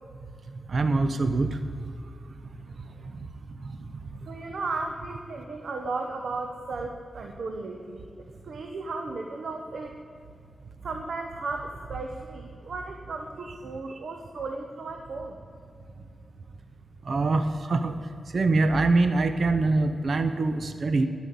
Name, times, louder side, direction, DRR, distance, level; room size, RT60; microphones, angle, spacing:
voice 1, 0.7-1.6 3.2-3.3 17.1-17.9 18.3-21.1, right 3 dB, 65° right, 9 dB, 0.8 m, -24 dB
voice 2, 4.2-8.1 8.4-9.9 10.8-15.4, right 3 dB, 80° right, 3 dB, 1.1 m, -35 dB
11.0 x 9.2 x 8.5 m, 2.5 s
wide cardioid pair, 85°, 0 cm